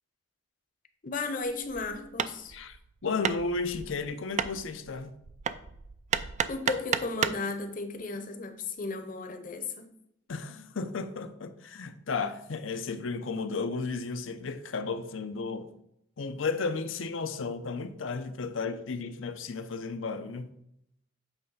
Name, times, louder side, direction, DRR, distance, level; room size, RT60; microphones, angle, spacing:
voice 1, 1.0-2.5 6.5-9.9, left 3 dB, 45° left, 0.8 m, -34 dB
Hammer, 1.4-7.5, right 7 dB, 35° right, 0.3 m, -33 dB
voice 2, 3.0-5.1 10.3-15.7 16.2-20.5, left 4 dB, 80° left, 0.6 m, -33 dB
8.1 x 3.3 x 5.4 m
head